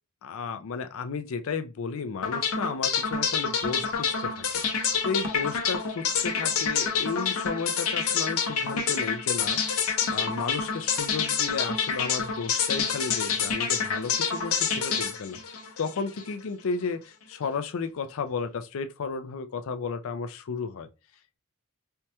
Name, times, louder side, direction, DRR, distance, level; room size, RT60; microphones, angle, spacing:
voice 1, 0.2-4.5 5.0-9.6 10.1-15.4 15.8-20.9, left 5 dB, 65° left, 0.4 m, -33 dB
sound 1, 2.2-16.3, left 6 dB, 85° left, 0.8 m, -27 dB
4.5 x 2.2 x 2.8 m
head